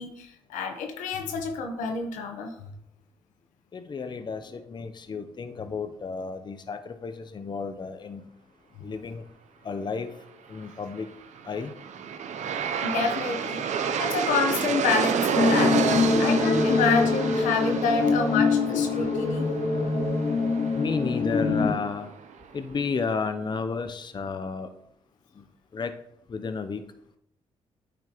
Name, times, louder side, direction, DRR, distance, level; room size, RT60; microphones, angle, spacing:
voice 1, 0.0-2.5 12.8-13.6 14.0-15.8 16.2-19.5, left 4 dB, 90° left, 4 dB, 1.0 m, -28 dB
voice 2, 3.7-8.2 8.8-9.2 9.6-10.1 10.5-11.1 11.4-11.7 15.9-16.2 18.7-18.8 20.8-22.1 22.5-24.7 25.4-25.5 25.7-25.9 26.3-26.8, left 5 dB, 35° left, 8 dB, 0.6 m, -32 dB
Aircraft, 11.3-22.4, right 7 dB, 70° right, 0.6 m, -30 dB
sound 1, 15.4-21.7, left 4 dB, 55° left, 1.2 m, -24 dB
8.9 x 5.0 x 2.9 m, 0.79 s
supercardioid pair, 60°, 13 cm